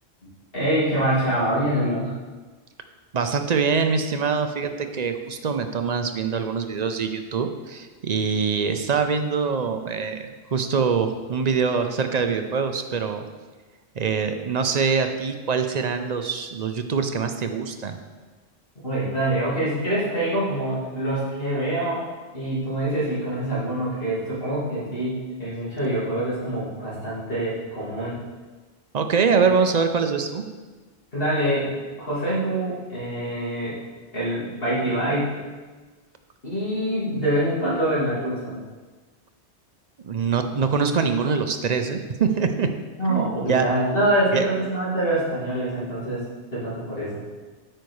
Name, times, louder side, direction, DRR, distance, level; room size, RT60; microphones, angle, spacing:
voice 1, 0.5-2.1 18.8-22.0 22.3-28.2 29.3-29.5 31.1-31.7 32.0-33.8 34.1-35.4 36.4-38.6 43.0-46.2 46.5-47.2, right 1 dB, 60° left, -9 dB, 3.3 m, -25 dB
voice 2, 3.1-13.2 14.0-18.0 28.9-30.4 40.0-42.7 43.1-43.6 44.3-44.4, right 5 dB, 50° right, 7 dB, 0.6 m, -24 dB
8.9 x 5.4 x 4.8 m, 1.3 s
omnidirectional pair, 1.1 m